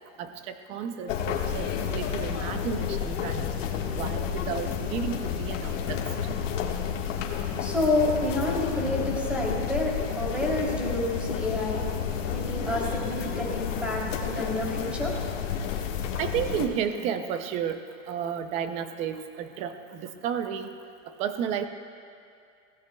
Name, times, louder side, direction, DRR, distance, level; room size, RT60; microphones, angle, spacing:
voice 1, 0.2-3.5 3.9-6.0 16.2-20.7 21.2-21.7, right 8 dB, 20° right, 9 dB, 0.4 m, -32 dB
sound 1, 1.1-16.7, left 7 dB, 70° left, 1.5 m, -31 dB
voice 2, 7.4-15.6, left 1 dB, 5° right, -4 dB, 2.8 m, -29 dB
21.0 x 16.5 x 2.2 m, 2.4 s
supercardioid pair, 145°, 39 cm